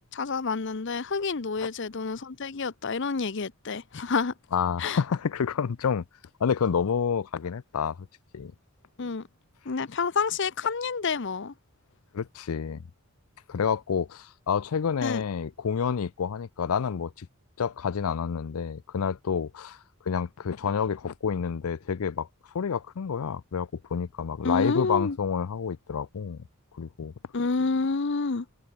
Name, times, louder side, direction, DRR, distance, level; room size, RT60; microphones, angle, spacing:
voice 1, 0.1-4.3 4.8-5.0 9.0-9.3 9.6-11.5 15.0-15.2 24.4-25.2 27.3-28.5, left 4 dB, 55° left, 0.7 m, -28 dB
voice 2, 4.5-6.0 6.4-8.0 8.3-8.5 12.1-12.9 13.5-17.3 17.6-19.8 20.1-22.3 22.5-26.4 26.7-27.1, left 6 dB, 85° left, 0.5 m, -29 dB
head